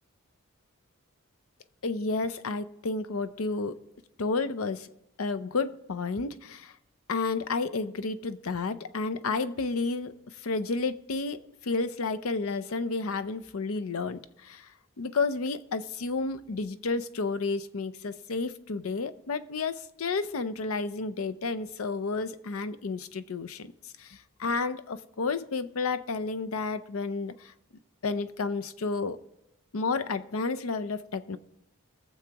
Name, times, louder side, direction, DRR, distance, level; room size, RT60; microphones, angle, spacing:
voice 1, 1.8-3.8 4.2-4.9 5.2-6.7 7.1-10.1 10.4-14.7 15.0-23.7 24.0-27.5 28.0-29.2 29.7-31.4, left 4 dB, 75° left, 0.6 m, -31 dB
21.0 x 7.1 x 2.9 m
head